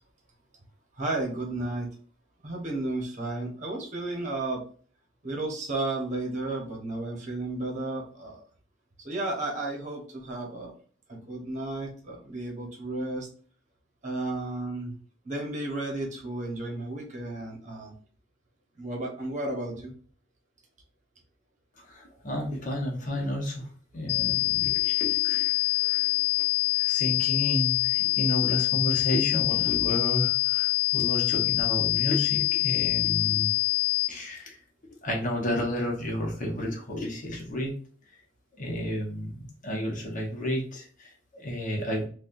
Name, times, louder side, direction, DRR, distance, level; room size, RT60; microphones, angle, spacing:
voice 1, 1.0-1.9 2.4-4.6 5.2-8.4 9.0-10.7 11.1-13.3 14.0-15.0 15.2-17.9 18.8-19.9, right 2 dB, 40° right, -1 dB, 1.1 m, -33 dB
voice 2, 21.9-23.7 23.9-26.1 26.8-33.5 34.1-34.6 35.0-37.7 38.6-42.1, equal, 45° left, -1 dB, 1.0 m, -31 dB
sound 1, 24.1-34.1, left 19 dB, 60° left, 0.3 m, -25 dB
4.2 x 2.4 x 2.5 m, 0.43 s
head